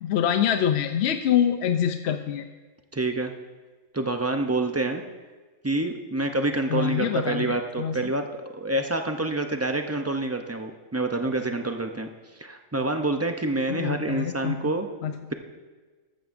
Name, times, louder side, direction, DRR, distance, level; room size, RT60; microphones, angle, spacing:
voice 1, 0.0-2.5 6.7-8.0 13.7-14.6 15.0-15.1, left 9 dB, 65° left, 7 dB, 0.7 m, -25 dB
voice 2, 2.9-3.3 3.9-5.0 5.6-12.1 12.4-14.9, right 2 dB, 25° right, 5 dB, 0.3 m, -27 dB
14.0 x 13.0 x 2.6 m, 1.3 s
omnidirectional pair, 1.4 m